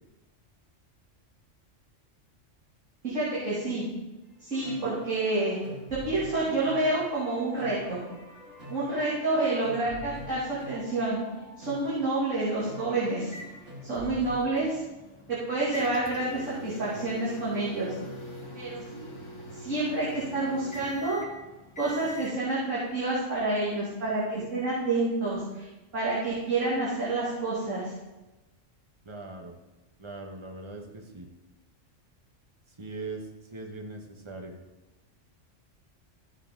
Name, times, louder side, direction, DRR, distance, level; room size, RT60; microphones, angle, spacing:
voice 1, 3.0-3.8 4.4-5.6 5.9-8.0 8.7-11.2 11.6-13.3 13.8-14.8 15.3-17.9 18.5-19.1 19.6-21.2 21.8-25.7 25.9-27.9, right 2 dB, 85° right, -9 dB, 3.0 m, -28 dB
sound 1, 4.4-14.4, equal, 65° right, 3.4 m, -46 dB
sound 2, 13.3-22.4, equal, 25° left, 1.2 m, -43 dB
voice 2, 29.0-29.5 30.0-31.3 32.7-34.6, right 3 dB, 25° right, 2 dB, 1.3 m, -40 dB
14.5 x 7.3 x 3.9 m, 1.1 s
omnidirectional pair, 1.3 m